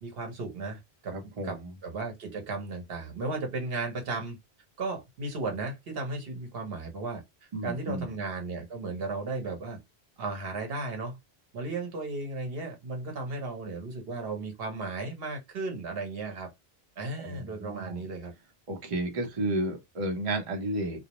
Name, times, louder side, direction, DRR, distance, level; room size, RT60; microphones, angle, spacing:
voice 1, 0.0-1.2 1.4-4.4 4.8-7.2 7.6-9.8 10.2-11.2 11.5-16.5 17.0-18.3, right 3 dB, 70° right, 1.0 m, -35 dB
voice 2, 1.1-1.7 7.5-8.2 17.2-18.0 18.7-21.0, right 1 dB, 35° right, 0.7 m, -32 dB
2.4 x 2.0 x 2.9 m
omnidirectional pair, 1.1 m